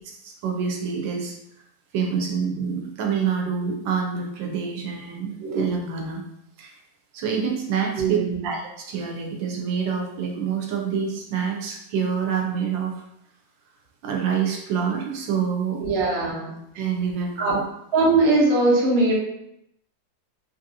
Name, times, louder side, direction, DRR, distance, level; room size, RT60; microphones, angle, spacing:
voice 1, 0.0-1.3 1.9-6.2 6.6-6.8 7.1-8.2 8.4-13.0 14.0-15.8 16.7-17.6, right 6 dB, 85° right, 1 dB, 1.3 m, -27 dB
voice 2, 8.0-8.4 15.8-16.5 17.4-17.5 17.9-19.1, right 2 dB, 50° right, -3 dB, 0.7 m, -20 dB
3.0 x 2.6 x 2.6 m, 0.78 s
omnidirectional pair, 2.0 m